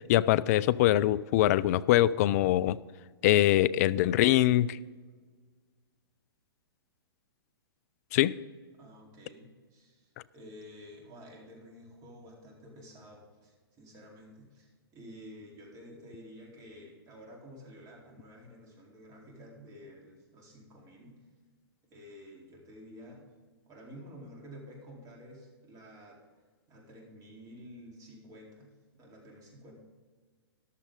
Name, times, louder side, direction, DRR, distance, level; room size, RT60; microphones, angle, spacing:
voice 1, 0.1-2.8 3.2-4.8 8.1-8.4, left 14 dB, 40° left, 19 dB, 0.4 m, -23 dB
voice 2, 8.8-21.1 21.9-23.3 23.7-26.2 26.7-28.7 28.9-29.7, equal, 25° right, -2 dB, 4.0 m, -51 dB
14.0 x 11.5 x 3.9 m, 1.5 s
figure-of-eight pair, 115°, 13 cm